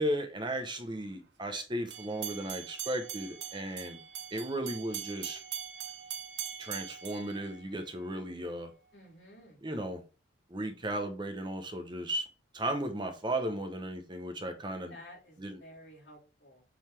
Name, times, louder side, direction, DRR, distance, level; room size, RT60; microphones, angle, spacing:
voice 1, 0.0-4.0 4.3-5.4 6.6-8.7 9.6-10.0 10.5-12.3 12.5-14.9 15.4-15.6, right 1 dB, 25° right, 6 dB, 0.8 m, -35 dB
sound 1, 1.9-8.1, right 9 dB, 65° right, 0.8 m, -42 dB
voice 2, 8.9-9.6 14.9-16.6, left 1 dB, 65° left, -3 dB, 3.6 m, -53 dB
7.4 x 4.0 x 3.3 m, 0.33 s
head